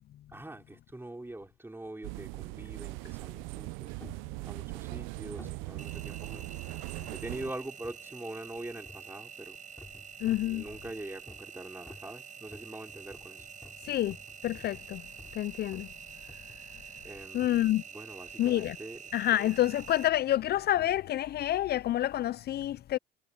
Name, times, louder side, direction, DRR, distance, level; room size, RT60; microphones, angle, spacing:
voice 1, 0.3-3.9 4.4-6.6 7.1-9.6 10.4-13.5 17.0-19.0, right 2 dB, 10° right, 4.6 m, -44 dB
sound 1, 2.0-7.5, right 25 dB, 80° right, 0.7 m, -40 dB
sound 2, 4.0-4.3 5.4-5.7 6.3-7.3 7.8-8.1 8.9-9.2 9.8-10.6 11.3-11.6 11.9-15.4 15.7-16.0 16.3-16.7 17.4-17.6 18.5-18.8 19.4-19.5, left 2 dB, 15° left, 3.2 m, -53 dB
Engine, 5.8-20.1, right 7 dB, 40° right, 4.9 m, -47 dB
voice 2, 10.2-10.6 13.8-14.2 14.4-15.0 15.3-15.9 17.3-17.8 18.4-18.8 19.1-23.0, left 13 dB, 55° left, 0.6 m, -28 dB
supercardioid pair, 70°, 20 cm